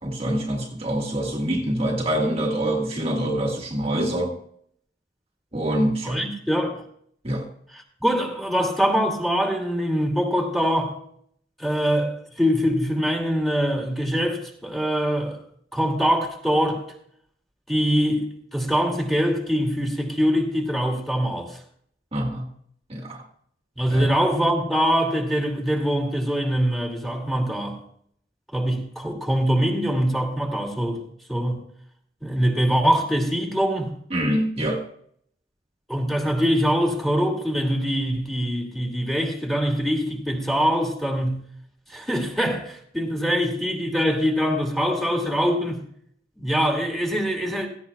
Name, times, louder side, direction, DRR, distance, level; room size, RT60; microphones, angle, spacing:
voice 1, 0.0-4.4 5.5-6.2 7.2-7.5 22.1-22.5 22.9-23.2 23.9-24.1 34.1-34.8, right 1 dB, 35° right, 1.6 m, -25 dB
voice 2, 6.0-6.8 7.7-11.0 11.6-15.4 15.7-16.8 17.7-21.6 23.8-27.8 28.5-31.0 31.3-31.6 32.2-33.9 35.9-41.4 41.9-45.8 46.4-47.7, equal, ahead, 2.5 m, -23 dB
16.5 x 16.0 x 2.4 m
head